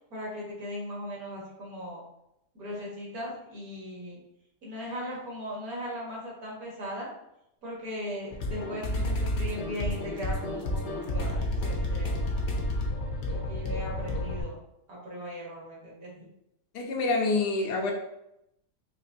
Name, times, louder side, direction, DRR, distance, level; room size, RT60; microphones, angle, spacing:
voice 1, 0.1-2.0 2.6-4.2 4.6-7.1 7.6-12.4 13.3-14.6 14.9-16.3, equal, 60° right, -4 dB, 1.8 m, -38 dB
sound 1, 8.3-14.4, left 1 dB, 60° left, 0.8 m, -30 dB
voice 2, 16.7-17.9, left 3 dB, 80° left, 1 dB, 1.3 m, -27 dB
4.8 x 2.9 x 2.6 m, 0.81 s
omnidirectional pair, 1.8 m